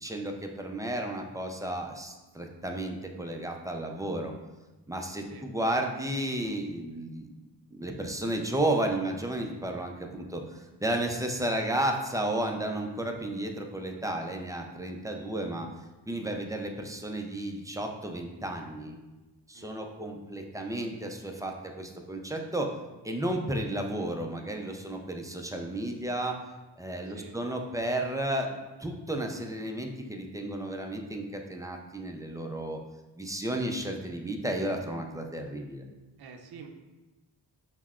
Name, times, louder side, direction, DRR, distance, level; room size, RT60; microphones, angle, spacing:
voice 1, 0.0-4.3 4.9-7.3 7.7-15.7 16.1-19.0 19.5-22.7 23.0-26.4 26.8-32.8 33.2-35.8, right 1 dB, 10° right, 2 dB, 0.4 m, -33 dB
voice 2, 19.5-19.9 27.0-27.4 36.2-36.7, right 5 dB, 60° right, 4 dB, 0.5 m, -48 dB
5.4 x 2.1 x 2.4 m, 1.1 s
cardioid pair, 40°, 43 cm